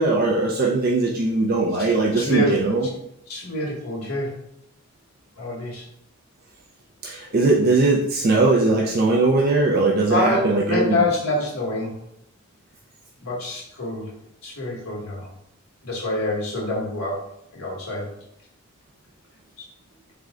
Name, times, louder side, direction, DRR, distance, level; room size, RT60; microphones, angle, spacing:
voice 1, 0.0-2.9 7.0-11.0, right 3 dB, 45° right, -1 dB, 0.4 m, -20 dB
voice 2, 2.1-2.5 3.3-4.3 5.4-5.9 10.1-11.9 13.2-14.1 14.4-15.3 15.8-17.2 17.5-18.1 19.6-19.7, left 1 dB, 80° left, -4 dB, 1.6 m, -26 dB
3.6 x 3.3 x 3.7 m, 0.76 s
head